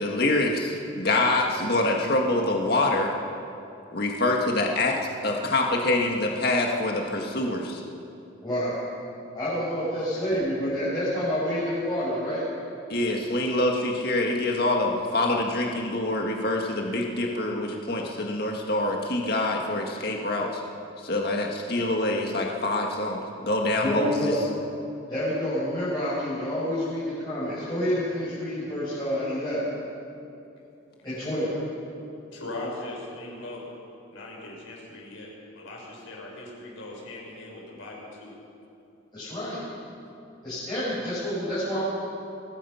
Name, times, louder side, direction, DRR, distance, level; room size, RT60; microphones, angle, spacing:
voice 1, 0.0-3.1 3.9-4.9 5.2-7.8 12.9-20.6 21.0-24.3, left 2 dB, 50° left, 0 dB, 1.9 m, -25 dB
voice 2, 8.4-8.7 9.3-12.4 23.8-24.4 25.1-29.6 31.0-31.6 39.1-39.6 40.4-41.8, equal, 20° left, -12 dB, 6.8 m, -28 dB
voice 3, 32.3-33.7 34.1-38.3, left 2 dB, 85° left, -3 dB, 6.7 m, -39 dB
24.5 x 19.0 x 5.8 m, 2.7 s
head